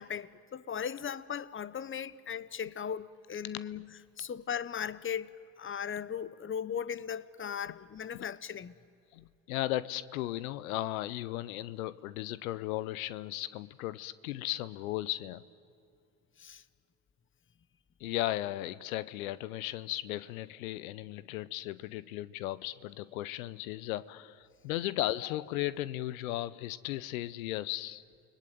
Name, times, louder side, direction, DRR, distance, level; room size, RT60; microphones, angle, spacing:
voice 1, 0.0-8.7 16.4-16.6, left 8 dB, 30° left, 1.0 m, -38 dB
voice 2, 9.1-15.4 18.0-28.0, left 15 dB, 90° left, 0.7 m, -36 dB
29.5 x 20.0 x 9.2 m
hypercardioid pair, 65°, 41 cm